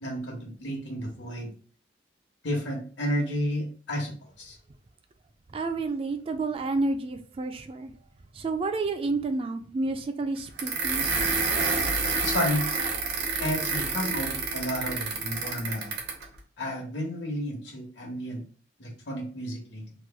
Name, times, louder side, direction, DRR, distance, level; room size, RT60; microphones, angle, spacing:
voice 1, 0.0-1.5 2.4-4.6 12.2-12.7 13.4-16.0 16.6-18.4 18.8-19.9, equal, 80° left, 1.1 m, -32 dB
voice 2, 5.5-7.9 8.3-11.1, right 3 dB, 30° right, 0.3 m, -30 dB
sound 1, 10.6-16.2, right 4 dB, 70° right, 0.8 m, -28 dB
3.0 x 2.2 x 3.3 m
head